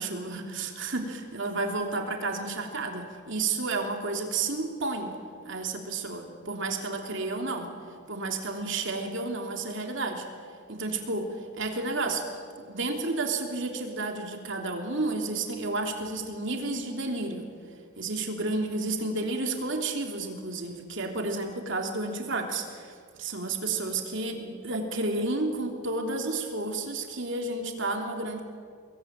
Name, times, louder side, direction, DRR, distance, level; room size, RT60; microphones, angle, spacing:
voice 1, 0.0-5.2 5.4-7.7 8.1-10.2 10.7-11.3 11.5-12.2 12.6-17.5 18.0-22.9 23.2-28.4, right 3 dB, 60° right, 3 dB, 3.2 m, -31 dB
25.5 x 21.5 x 8.9 m, 2.2 s
head